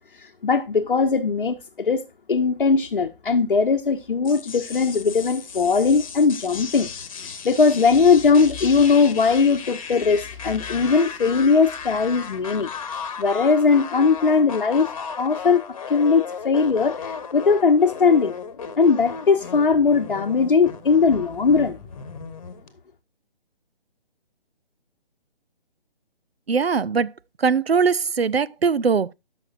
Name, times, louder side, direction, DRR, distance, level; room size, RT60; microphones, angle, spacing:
voice 1, 0.1-2.0 2.3-6.9 7.2-12.7 13.2-15.6 15.9-17.1 17.3-18.3 18.8-21.8, left 5 dB, 55° left, 0.9 m, -19 dB
sound 1, 4.2-22.7, left 6 dB, 35° left, 1.2 m, -36 dB
voice 2, 26.5-27.1 27.4-29.1, right 5 dB, 80° right, 0.5 m, -21 dB
13.5 x 6.3 x 2.5 m
figure-of-eight pair, 145°, 30 cm